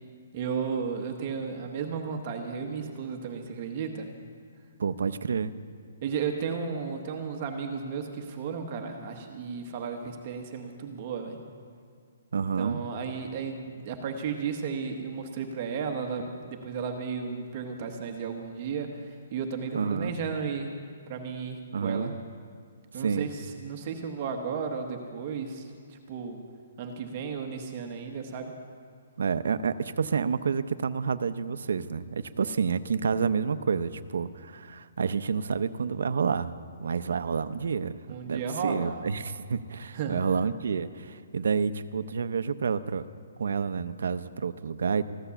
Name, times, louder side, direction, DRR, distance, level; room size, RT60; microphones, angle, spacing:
voice 1, 0.3-4.1 6.0-11.4 12.6-20.7 21.1-22.1 22.9-26.4 26.8-28.5 38.1-39.0 39.9-40.2, right 6 dB, 25° right, 4 dB, 1.0 m, -34 dB
voice 2, 4.8-5.6 12.3-12.8 19.7-20.1 21.7-22.1 22.9-23.3 29.2-36.5 36.8-37.9 38.2-43.1 43.4-45.1, right 6 dB, 65° right, 12 dB, 0.6 m, -29 dB
15.0 x 12.5 x 6.9 m, 2.2 s
hypercardioid pair, 175°, 0 cm